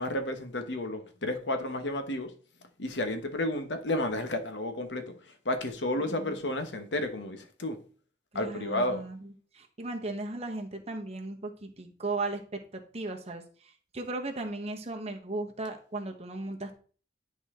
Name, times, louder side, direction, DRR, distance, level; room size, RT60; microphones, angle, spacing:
voice 1, 0.0-2.3 2.8-7.8 8.3-9.0, left 1 dB, 85° left, 1.1 m, -32 dB
voice 2, 6.0-6.4 8.3-16.7, right 2 dB, 35° right, 1.1 m, -37 dB
10.0 x 4.2 x 3.7 m
head